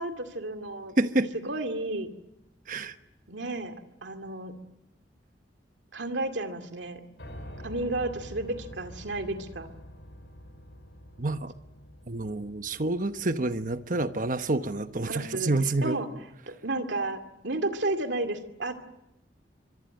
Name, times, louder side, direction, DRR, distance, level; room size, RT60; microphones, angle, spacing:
voice 1, 0.0-1.0 1.4-2.1 3.3-3.7 4.0-4.5 5.9-7.0 7.6-9.7 15.0-15.5 15.8-16.1 16.5-18.7, right 2 dB, 80° right, 2.4 m, -32 dB
voice 2, 1.0-1.3 2.7-3.0 11.2-11.5 12.1-16.0, right 2 dB, 45° right, 1.1 m, -28 dB
Piano, 7.2-15.2, equal, 75° left, 4.8 m, -47 dB
25.0 x 23.5 x 7.8 m
head